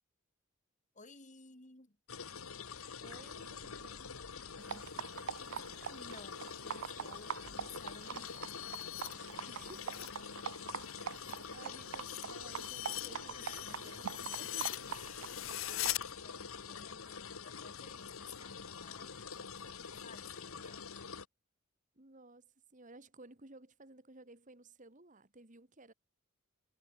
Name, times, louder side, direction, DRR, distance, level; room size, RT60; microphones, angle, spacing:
voice 1, 0.9-2.0 4.6-5.2 5.9-8.6 11.6-11.8 13.3-14.3 14.7-20.9, left 4 dB, 35° left, 4.0 m, -56 dB
sound 1, 2.1-21.3, left 6 dB, 90° left, 1.5 m, -46 dB
voice 2, 3.0-4.1 9.5-10.2 11.0-14.9 22.0-25.9, right 2 dB, 35° right, 2.0 m, -56 dB
sound 2, 4.6-15.9, right 8 dB, 65° right, 0.4 m, -45 dB
sound 3, 7.8-10.2 10.5-16.0, left 16 dB, 65° left, 0.7 m, -43 dB
head